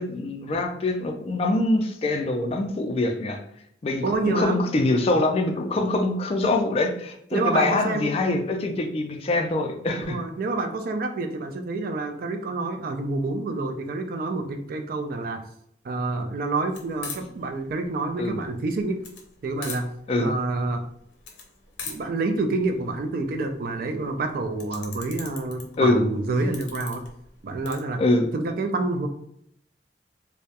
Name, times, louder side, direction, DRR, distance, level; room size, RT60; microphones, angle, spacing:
voice 1, 0.0-3.4 3.8-10.2 18.2-18.4 20.1-20.3 25.8-26.0 28.0-28.3, left 2 dB, 35° left, 3 dB, 0.3 m, -24 dB
voice 2, 4.0-4.6 7.3-8.1 9.9-15.4 15.8-19.0 19.4-19.9 20.2-20.8 21.9-27.0 27.4-28.0 28.3-29.1, right 3 dB, 55° right, 6 dB, 0.3 m, -28 dB
sound 1, 16.7-27.8, left 5 dB, 85° left, 0.5 m, -43 dB
2.2 x 2.0 x 2.7 m, 0.71 s
head